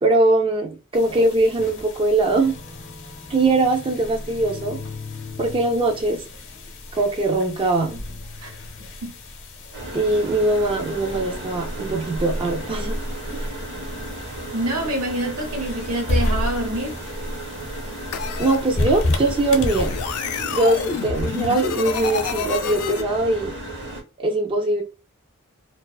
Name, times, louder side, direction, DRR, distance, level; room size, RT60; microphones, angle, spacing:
voice 1, 0.0-2.6 3.3-4.8 5.4-6.2 6.9-8.0 9.9-13.0 13.3-13.5 18.4-19.9 20.5-23.5 24.2-24.8, right 2 dB, 25° right, 0.4 m, -21 dB
sound 1, 0.9-20.2, left 1 dB, 60° left, 0.7 m, -32 dB
sound 2, 9.7-24.0, right 1 dB, 55° right, 0.9 m, -35 dB
voice 2, 14.5-17.0, right 1 dB, 80° right, 0.9 m, -26 dB
sound 3, 18.1-18.6 19.7-23.0, left 6 dB, 85° left, 0.4 m, -28 dB
2.4 x 2.3 x 2.3 m
head